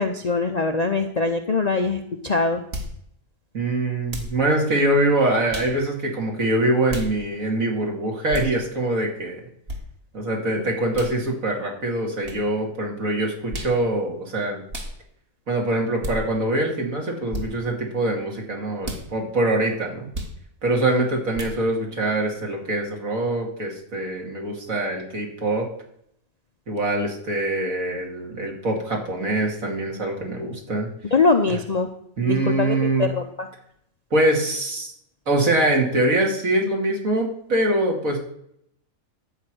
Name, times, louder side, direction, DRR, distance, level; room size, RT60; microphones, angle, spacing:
voice 1, 0.0-2.6 10.6-10.7 31.1-31.9 32.3-33.5, left 4 dB, 45° left, 5 dB, 0.5 m, -22 dB
sound 1, 2.7-3.0 4.1-4.4 5.5-5.7 6.9-7.1 8.3-8.5 9.7-9.8 10.9-11.1 12.2-12.4 13.5-13.8 14.7-14.9 16.0-16.2 17.3-17.5 18.8-19.0 20.1-20.4 21.3-21.6, equal, 45° right, 1.7 m, -31 dB
voice 2, 3.5-9.4 10.1-14.6 15.5-20.1 20.6-25.7 26.7-30.9 32.2-33.1 34.1-34.9 35.3-38.2, right 1 dB, 65° right, 0 dB, 2.8 m, -23 dB
11.5 x 4.9 x 7.8 m, 0.72 s
omnidirectional pair, 1.5 m